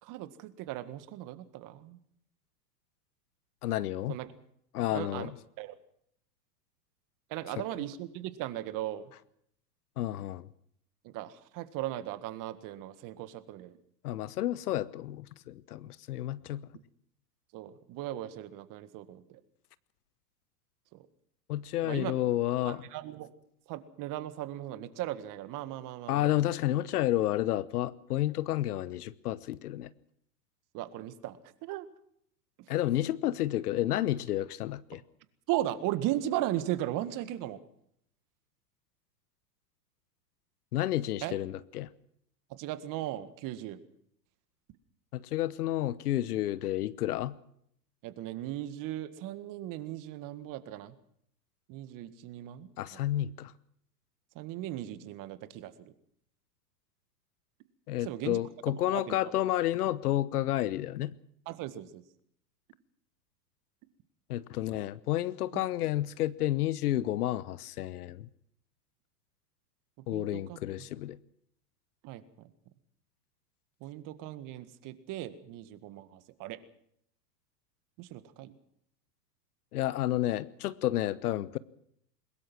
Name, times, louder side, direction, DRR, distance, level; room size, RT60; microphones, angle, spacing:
voice 1, 0.0-2.0 4.1-4.3 4.9-5.3 5.6-5.7 7.3-9.1 11.0-13.7 17.5-19.4 20.9-21.1 21.8-22.1 22.6-23.3 23.7-26.4 30.7-31.9 34.9-35.0 35.5-37.6 41.2-41.4 42.5-43.8 48.0-50.9 51.7-53.1 54.3-55.9 58.0-58.4 58.7-59.2 61.4-62.0 65.5-65.6 70.1-70.9 72.0-72.5 73.8-76.6 78.0-78.5, right 14 dB, 40° right, 12 dB, 1.8 m, -37 dB
voice 2, 3.6-4.2 4.7-5.3 10.0-10.5 14.0-16.7 21.5-22.8 26.1-29.9 32.7-35.0 40.7-41.9 45.1-47.4 52.8-53.5 57.9-61.2 64.3-68.3 70.1-71.2 79.7-81.6, left 14 dB, 65° left, 19 dB, 1.1 m, -31 dB
22.0 x 20.5 x 6.1 m, 0.70 s
hypercardioid pair, 105°, 49 cm